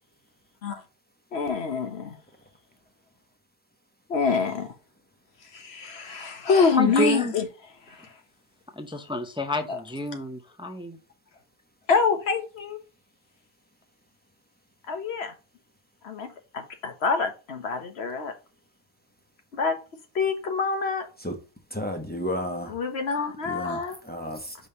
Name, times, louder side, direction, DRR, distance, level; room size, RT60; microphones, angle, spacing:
voice 1, 1.3-2.2 4.1-4.7 5.5-7.5 8.0-8.1 9.7-9.8 11.9-12.8 14.9-15.3 16.0-18.3 19.5-19.8 20.1-21.1 22.7-24.0, left 5 dB, 75° left, 1.3 m, -26 dB
voice 2, 6.8-7.3 8.7-11.0, left 1 dB, 5° right, 0.5 m, -29 dB
voice 3, 21.7-22.8 23.4-24.6, equal, 10° left, 0.9 m, -32 dB
5.3 x 3.3 x 5.5 m
omnidirectional pair, 1.1 m